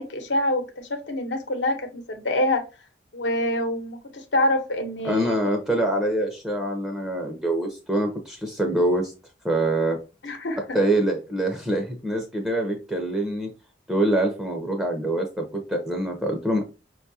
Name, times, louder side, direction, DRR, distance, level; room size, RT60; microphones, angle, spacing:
voice 1, 0.0-2.6 3.1-5.3 10.2-10.6, left 1 dB, 85° left, 0.8 m, -26 dB
voice 2, 5.0-9.1 9.4-10.0 10.7-13.5 13.9-16.6, right 1 dB, 5° right, 0.5 m, -25 dB
5.2 x 2.3 x 2.7 m
head